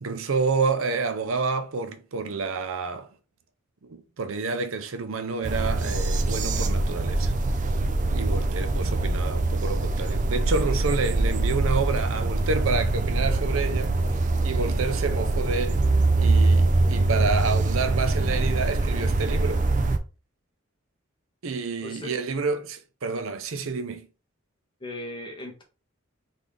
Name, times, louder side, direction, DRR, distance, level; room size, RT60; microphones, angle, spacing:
voice 1, 0.0-3.1 3.8-7.3 8.1-15.8 16.1-19.6 21.4-24.1, right 4 dB, 80° right, 0.6 m, -29 dB
sound 1, 5.4-20.0, right 2 dB, 40° right, 0.5 m, -23 dB
voice 2, 21.8-22.1 24.8-25.6, left 1 dB, 25° left, 1.2 m, -37 dB
3.9 x 3.6 x 3.3 m
head